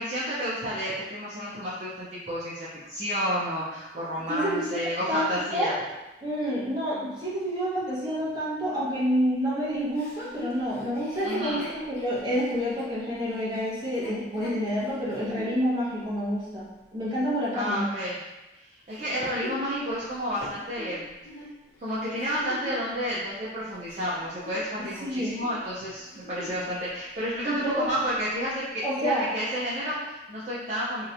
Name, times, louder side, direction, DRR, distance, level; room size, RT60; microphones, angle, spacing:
voice 1, 0.0-5.7 11.2-11.6 17.5-18.2 18.5-21.1 21.8-31.1, equal, 40° right, -9 dB, 0.5 m, -31 dB
voice 2, 4.3-5.7 6.2-17.9 25.0-25.3 27.4-27.9 28.8-29.3, equal, 25° right, -9 dB, 1.0 m, -28 dB
Chuckle chortle, 10.0-15.5 16.1-16.2 18.9-22.9 23.5-25.0 25.2-25.5 26.0-26.7 27.0-27.1 27.5-28.0 28.6-28.7, left 1 dB, 55° left, 0.7 m, -44 dB
3.1 x 2.9 x 2.5 m, 1.1 s
head